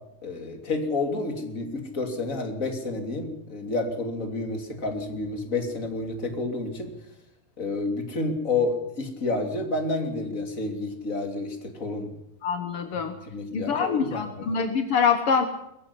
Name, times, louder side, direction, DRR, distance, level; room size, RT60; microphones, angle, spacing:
voice 1, 0.2-6.9 7.6-12.1 13.3-14.5, left 3 dB, 25° left, 4 dB, 2.8 m, -30 dB
voice 2, 12.4-13.1 13.5-15.4, left 6 dB, 65° left, 7 dB, 1.4 m, -25 dB
22.0 x 14.5 x 9.8 m, 0.81 s
omnidirectional pair, 4.5 m